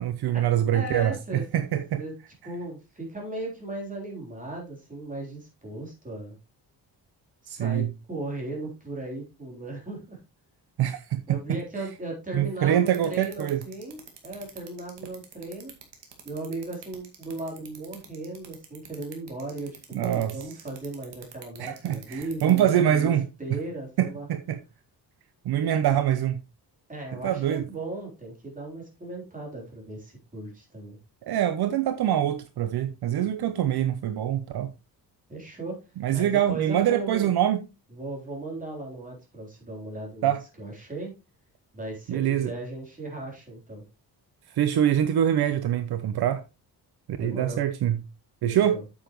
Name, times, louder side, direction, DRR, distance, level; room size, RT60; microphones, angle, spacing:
voice 1, 0.0-2.0 7.5-7.9 10.8-11.6 12.3-13.6 19.9-20.4 21.6-23.2 24.0-24.6 25.4-26.4 27.2-27.7 31.2-34.7 36.0-37.6 40.2-40.4 42.1-42.5 44.5-46.4 47.2-48.0 48.4-48.8, right 10 dB, 70° right, 0.8 m, -24 dB
voice 2, 0.7-1.4 2.0-2.1 2.5-6.4 7.4-10.2 11.3-15.7 16.2-23.1 23.4-24.3 26.9-31.0 35.3-35.8 36.1-37.3 37.9-40.3 40.6-41.1 41.7-43.8 47.2-47.6 48.5-48.8, right 2 dB, 20° right, 3.8 m, -37 dB
sound 1, 12.9-22.7, right 9 dB, 90° right, 2.2 m, -45 dB
8.7 x 7.4 x 3.1 m
cardioid pair, 140°, 40 cm